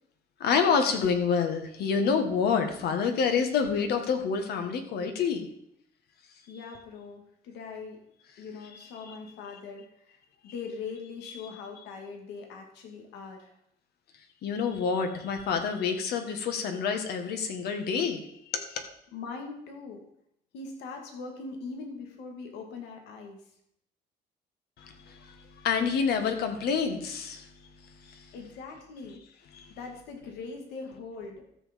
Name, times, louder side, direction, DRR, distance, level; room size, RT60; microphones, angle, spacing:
voice 1, 0.4-5.5 14.4-18.3 18.5-18.8 24.8-27.5 28.0-28.3 29.5-29.7, left 6 dB, 70° left, 6 dB, 1.9 m, -28 dB
voice 2, 6.5-8.0 8.4-13.5 19.1-20.0 20.5-23.4 28.3-29.2 29.8-31.5, left 4 dB, 85° left, 3 dB, 2.3 m, -41 dB
13.0 x 6.9 x 5.4 m, 0.75 s
cardioid pair, 110°, 17 cm